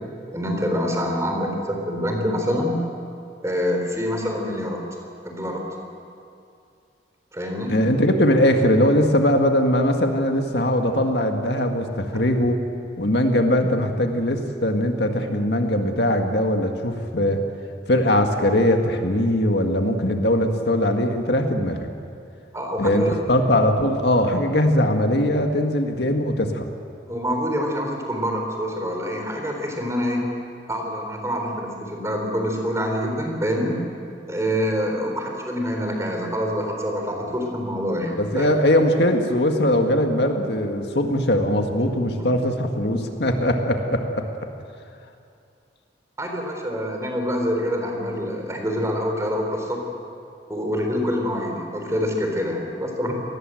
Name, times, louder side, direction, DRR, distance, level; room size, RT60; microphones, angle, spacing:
voice 1, 0.3-2.9 3.4-4.9 5.2-5.6 7.3-7.8 12.1-12.3 22.5-23.2 27.1-30.3 30.7-33.8 34.3-38.5 46.2-49.8 50.5-53.1, equal, 15° right, 2 dB, 3.9 m, -26 dB
voice 2, 7.7-12.6 13.0-17.4 17.9-21.9 22.8-26.7 38.2-44.3, left 1 dB, 65° left, 4 dB, 1.9 m, -21 dB
27.5 x 19.5 x 7.9 m, 2.4 s
head